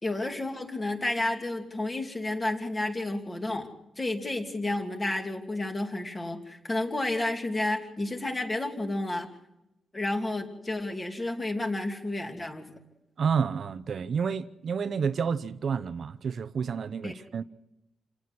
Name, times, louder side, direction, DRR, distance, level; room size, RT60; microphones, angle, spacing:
voice 1, 0.0-3.7 4.0-9.3 9.9-12.8 17.0-17.1, left 2 dB, 20° left, 2.9 m, -31 dB
voice 2, 13.2-17.4, right 6 dB, 50° right, 0.9 m, -30 dB
29.0 x 18.0 x 6.2 m
wide cardioid pair, 165°, 0 cm